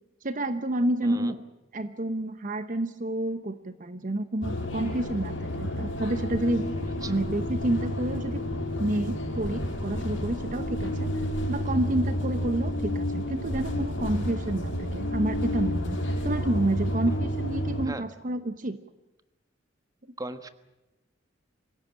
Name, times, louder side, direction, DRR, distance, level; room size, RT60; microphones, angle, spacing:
voice 1, 0.2-1.4 1.7-6.7 7.1-8.4 8.8-16.0 16.2-18.8, right 1 dB, 40° right, 11 dB, 0.9 m, -29 dB
voice 2, 1.0-1.3 7.0-7.2 17.1-17.2 17.8-18.1 20.2-20.5, right 2 dB, 20° right, 10 dB, 1.3 m, -38 dB
sound 1, 4.4-17.9, equal, 75° left, 6.0 m, -30 dB
25.0 x 16.5 x 8.9 m, 1.0 s
head